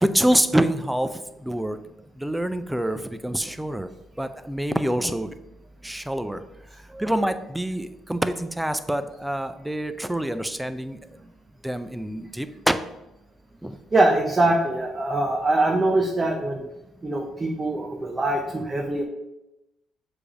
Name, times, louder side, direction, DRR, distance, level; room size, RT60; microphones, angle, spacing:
voice 1, 0.0-1.1 1.4-1.8 2.2-3.9 4.2-5.3 5.8-6.4 7.0-11.0 11.6-12.8 13.6-13.8, right 1 dB, 5° right, 10 dB, 0.5 m, -26 dB
voice 2, 13.9-16.6 17.0-19.0, right 2 dB, 25° right, 1 dB, 0.8 m, -23 dB
6.8 x 3.4 x 4.9 m, 0.93 s
cardioid pair, 100°, 0 cm